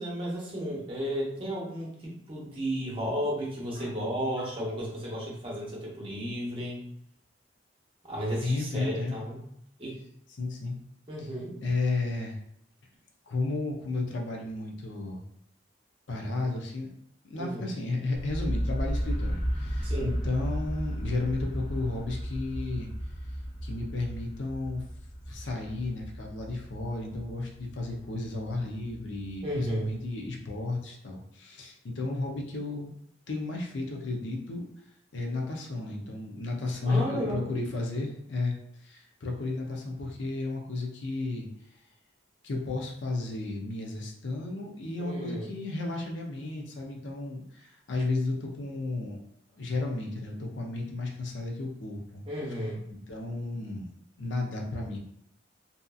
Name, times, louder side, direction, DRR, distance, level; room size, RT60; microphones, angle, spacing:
voice 1, 0.0-6.8 8.0-9.4 9.8-9.9 11.1-11.6 17.3-17.6 19.8-20.2 29.4-29.9 36.8-37.4 45.0-45.5 52.3-52.8, equal, 30° right, -4 dB, 0.8 m, -33 dB
voice 2, 3.7-4.0 4.4-4.5 8.4-9.2 10.4-10.8 11.2-11.3 11.6-12.4 13.3-15.2 16.1-16.9 17.2-22.9 23.6-24.8 25.3-32.9 33.3-34.6 35.1-38.5 38.8-41.5 42.4-49.2 49.5-52.2 53.1-53.9 54.2-55.0, left 2 dB, 85° left, 1 dB, 0.5 m, -33 dB
sound 1, 18.1-30.0, equal, 5° left, 0.5 m, -34 dB
2.7 x 2.5 x 2.3 m, 0.72 s
head